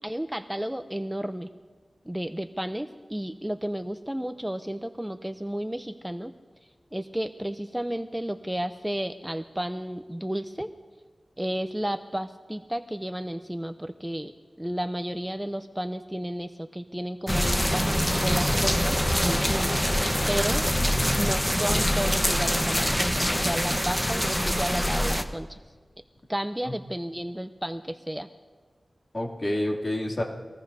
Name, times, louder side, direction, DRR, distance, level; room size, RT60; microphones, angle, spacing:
voice 1, 0.0-1.5 2.1-6.3 6.9-10.7 11.4-14.3 14.6-19.0 19.2-19.7 20.3-20.6 21.2-25.6 26.3-28.3, equal, 10° right, 8 dB, 0.6 m, -32 dB
sound 1, 17.3-25.2, equal, 5° left, 1.1 m, -24 dB
voice 2, 20.7-21.3 29.1-30.2, left 1 dB, 45° left, -1 dB, 2.8 m, -29 dB
25.0 x 20.0 x 2.8 m, 1.4 s
wide cardioid pair, 60°, 0 cm